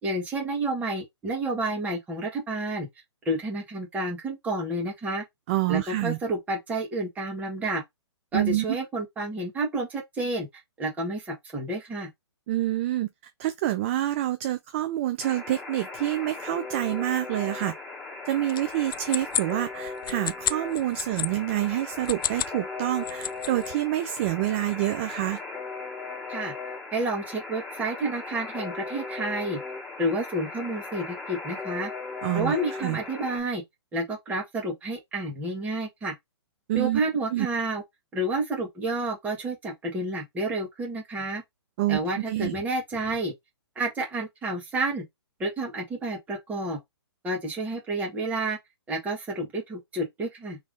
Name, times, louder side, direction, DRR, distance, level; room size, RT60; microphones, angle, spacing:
voice 1, 0.0-2.9 3.2-5.2 5.7-7.8 8.3-10.5 10.8-12.1 26.3-26.5 26.9-29.6 30.0-31.9 32.3-33.6 33.9-36.1 36.7-37.8 38.1-41.4 41.9-43.3 43.7-45.0 45.4-46.8 47.2-48.6 48.9-50.6, right 2 dB, 10° right, 1.6 m, -30 dB
voice 2, 5.5-6.2 8.3-8.6 12.5-17.7 18.3-25.4 32.2-33.0 36.7-37.0 37.3-37.5 41.8-42.0 42.3-42.5, right 14 dB, 30° right, 0.4 m, -27 dB
Alarm, 15.2-33.4, left 3 dB, 5° left, 2.1 m, -38 dB
sound 1, 18.5-21.3 21.9-22.6 22.9-23.7, left 10 dB, 50° left, 0.4 m, -31 dB
3.5 x 3.2 x 3.8 m
hypercardioid pair, 150°, 14 cm